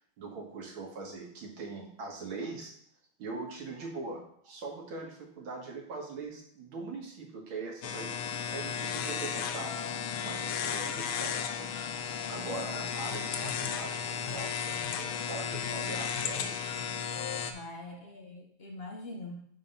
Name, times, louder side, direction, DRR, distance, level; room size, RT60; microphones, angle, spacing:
voice 1, 0.2-2.7 3.2-9.7 10.2-16.6 17.9-18.1, right 3 dB, 70° right, 1 dB, 2.2 m, -42 dB
sound 1, 7.8-17.5, left 7 dB, 85° left, 1.6 m, -34 dB
voice 2, 17.5-19.4, left 2 dB, 55° left, 1 dB, 0.6 m, -43 dB
5.7 x 5.4 x 5.4 m, 0.63 s
omnidirectional pair, 2.4 m